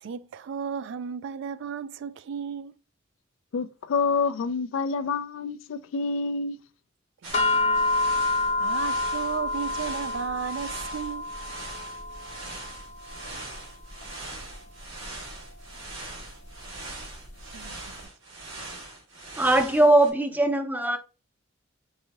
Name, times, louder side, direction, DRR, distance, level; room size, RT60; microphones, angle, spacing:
voice 1, 0.0-2.7 7.2-7.8 8.6-11.3 17.4-17.9, right 7 dB, 65° right, 0.3 m, -35 dB
voice 2, 3.5-6.6, left 4 dB, 80° left, 0.4 m, -27 dB
sound 1, 7.2-20.1, right 2 dB, 90° right, 1.9 m, -42 dB
sound 2, 7.3-17.8, left 2 dB, 35° left, 0.7 m, -30 dB
voice 3, 19.4-21.0, right 1 dB, 10° right, 0.5 m, -20 dB
4.6 x 2.7 x 2.8 m
head